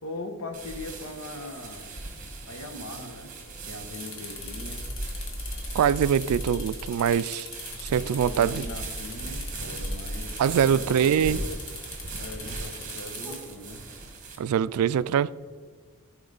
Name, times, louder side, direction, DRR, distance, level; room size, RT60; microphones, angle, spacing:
voice 1, 0.0-1.9 2.5-3.4 3.7-4.9 7.9-11.5 12.2-13.9, left 2 dB, 85° left, 1.2 m, -40 dB
sound 1, 0.5-14.4, right 4 dB, 35° right, 1.3 m, -40 dB
sound 2, 0.6-14.1, equal, 5° right, 1.2 m, -40 dB
sound 3, 3.9-13.4, left 5 dB, 60° left, 1.2 m, -42 dB
voice 2, 5.7-7.5 7.8-8.6 10.4-11.4 14.4-15.4, right 8 dB, 85° right, 0.3 m, -23 dB
14.0 x 5.0 x 3.9 m
head